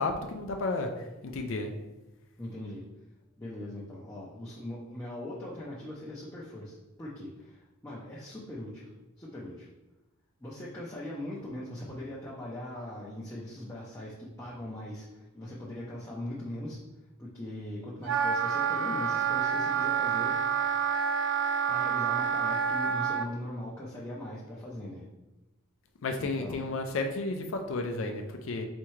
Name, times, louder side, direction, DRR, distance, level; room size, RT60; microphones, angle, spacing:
voice 1, 0.0-1.7 26.0-28.6, left 3 dB, 65° left, 4 dB, 0.4 m, -32 dB
voice 2, 2.4-2.8 3.4-8.9 9.2-9.7 10.4-16.8 17.2-20.4 21.7-25.1 26.2-26.6, left 1 dB, 15° left, -7 dB, 0.6 m, -40 dB
Wind instrument woodwind instrument, 18.0-23.3, right 7 dB, 60° right, 0.3 m, -28 dB
4.3 x 3.6 x 3.1 m, 1.0 s
head